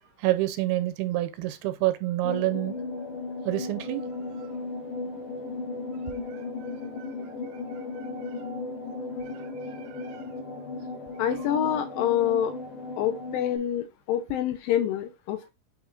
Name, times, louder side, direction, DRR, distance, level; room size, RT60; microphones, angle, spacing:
voice 1, 0.2-2.8 3.5-4.0 7.0-7.1 9.9-10.2, right 16 dB, 80° right, 2.3 m, -27 dB
sound 1, 2.2-13.6, left 3 dB, 55° left, 3.4 m, -36 dB
voice 2, 11.2-12.5 13.0-15.5, left 10 dB, 80° left, 2.1 m, -26 dB
8.9 x 3.1 x 3.7 m
omnidirectional pair, 4.5 m